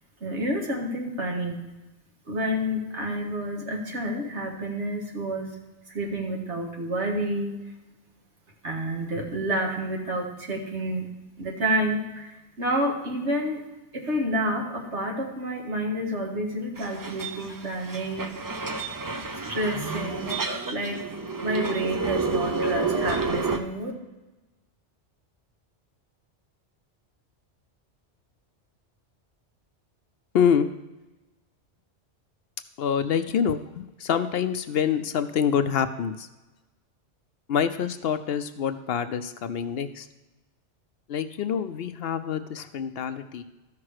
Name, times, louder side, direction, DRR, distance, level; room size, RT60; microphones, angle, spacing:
voice 1, 0.2-1.6 2.3-5.5 5.9-7.6 8.6-11.1 11.4-13.6 13.9-18.3 19.5-20.3 20.7-21.0 21.4-23.9, right 1 dB, 75° right, 1 dB, 1.9 m, -29 dB
sound 1, 16.8-23.6, right 3 dB, 30° right, 0.4 m, -30 dB
voice 2, 30.3-30.7 32.8-36.3 37.5-40.1 41.1-43.4, left 7 dB, 65° left, 11 dB, 0.7 m, -26 dB
13.5 x 6.0 x 4.8 m, 1.1 s
omnidirectional pair, 1.2 m